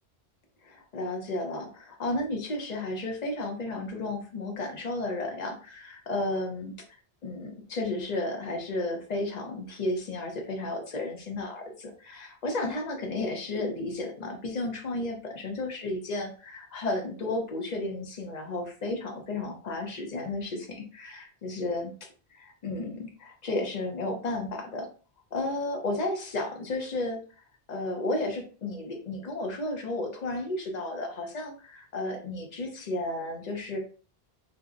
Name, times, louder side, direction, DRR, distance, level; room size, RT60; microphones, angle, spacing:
voice 1, 0.6-6.7 7.2-21.9 22.3-24.9 25.3-27.2 27.7-33.8, left 2 dB, 50° left, 2 dB, 0.6 m, -33 dB
2.6 x 2.0 x 2.4 m, 0.38 s
omnidirectional pair, 1.1 m